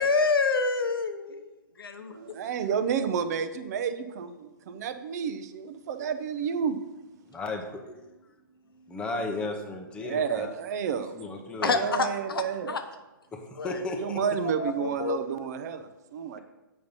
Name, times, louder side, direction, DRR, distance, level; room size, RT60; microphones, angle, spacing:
voice 1, 0.0-1.5 1.8-2.2 11.6-12.4 12.7-12.8 13.6-13.8 14.6-15.2, left 4 dB, 85° left, 8 dB, 1.0 m, -27 dB
voice 2, 2.1-6.8 10.0-11.1 11.6-12.8 13.9-16.4, right 7 dB, 50° right, 10 dB, 0.7 m, -31 dB
voice 3, 7.3-7.8 8.8-10.5 11.1-11.9 13.3-14.2, left 2 dB, 10° left, 2 dB, 0.8 m, -34 dB
7.8 x 5.3 x 5.4 m, 1.0 s
hypercardioid pair, 140°, 12 cm